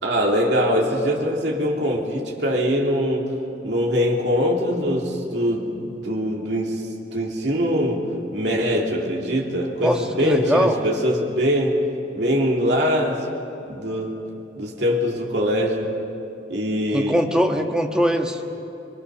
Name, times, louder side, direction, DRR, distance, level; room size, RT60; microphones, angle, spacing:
voice 1, 0.0-3.3 3.6-8.0 8.3-11.8 12.1-13.3 13.7-14.2 14.6-16.0 16.5-17.2, equal, 70° right, -1 dB, 3.1 m, -22 dB
voice 2, 9.8-10.8 16.9-18.4, equal, 5° right, 3 dB, 1.4 m, -21 dB
24.0 x 23.0 x 6.6 m, 2.9 s
head